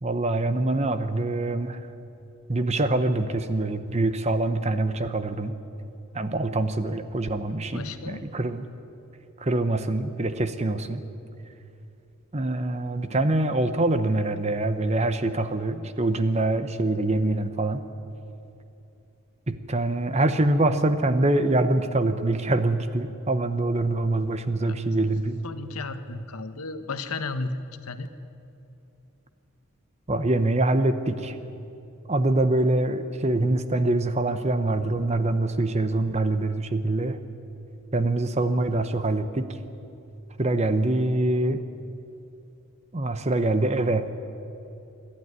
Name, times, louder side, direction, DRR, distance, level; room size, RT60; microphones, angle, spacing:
voice 1, 0.0-1.8 2.5-5.5 6.1-8.6 9.4-11.0 12.3-17.8 19.5-25.4 30.1-31.4 32.1-37.2 37.9-39.5 40.4-41.6 42.9-44.1, right 2 dB, 30° right, 10 dB, 0.9 m, -24 dB
voice 2, 7.7-8.3 24.6-24.8 25.4-28.1, left 3 dB, 80° left, 9 dB, 1.1 m, -34 dB
26.0 x 12.0 x 9.7 m, 2.8 s
head